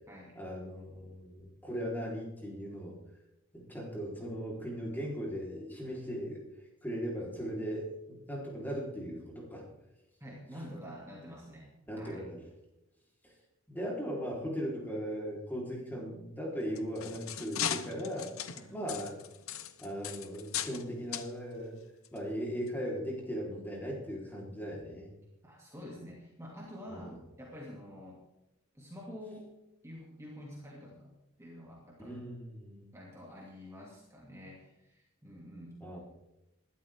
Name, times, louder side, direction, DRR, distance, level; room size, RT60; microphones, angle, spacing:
voice 1, 0.3-3.0 3.5-6.4 6.8-9.7 11.9-12.4 13.2-13.3 13.7-18.3 18.7-19.2 19.8-21.8 22.1-25.1 26.9-27.1 32.0-32.9 35.8-36.0, equal, 10° left, -2 dB, 4.0 m, -38 dB
voice 2, 10.2-12.2 18.5-18.7 25.4-28.2 28.7-29.5 29.8-31.1 31.4-32.2 32.9-35.8, equal, 15° right, -4 dB, 2.7 m, -48 dB
sound 1, 16.6-20.8 21.1-21.3 22.0-22.2 22.7-22.8, left 9 dB, 85° left, 1.0 m, -38 dB
20.0 x 12.5 x 3.7 m, 0.91 s
head